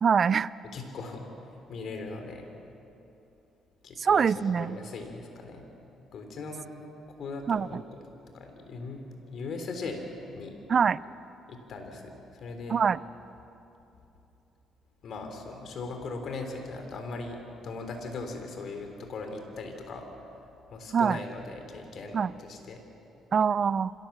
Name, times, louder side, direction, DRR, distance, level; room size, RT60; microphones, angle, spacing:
voice 1, 0.0-0.5 4.0-4.8 7.5-7.8 10.7-11.0 12.7-13.0 20.9-21.2 22.1-22.3 23.3-23.9, right 6 dB, 45° right, 19 dB, 0.4 m, -24 dB
voice 2, 0.7-2.5 3.8-5.7 6.1-6.7 7.2-7.8 8.3-10.0 10.3-10.6 11.5-12.8 15.0-20.1 20.3-20.4 20.7-22.8, left 3 dB, 60° left, 5 dB, 3.5 m, -39 dB
25.5 x 17.0 x 7.5 m, 2.9 s
cardioid pair, 105°, 0 cm